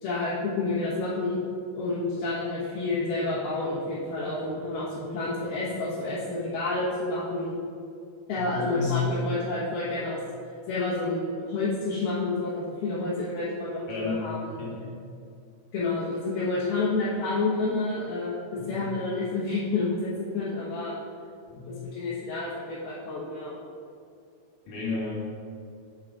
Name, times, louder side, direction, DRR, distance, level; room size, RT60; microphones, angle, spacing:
voice 1, 0.0-1.4 1.7-7.6 8.3-10.2 10.7-14.6 15.7-20.9 21.8-23.5, left 3 dB, 85° left, -10 dB, 3.1 m, -29 dB
voice 2, 8.3-9.1 13.9-14.3 14.6-15.0 18.5-18.8 21.5-21.7 24.7-25.2, left 5 dB, 65° left, -6 dB, 3.2 m, -32 dB
8.8 x 8.1 x 2.5 m, 2.4 s
omnidirectional pair, 4.3 m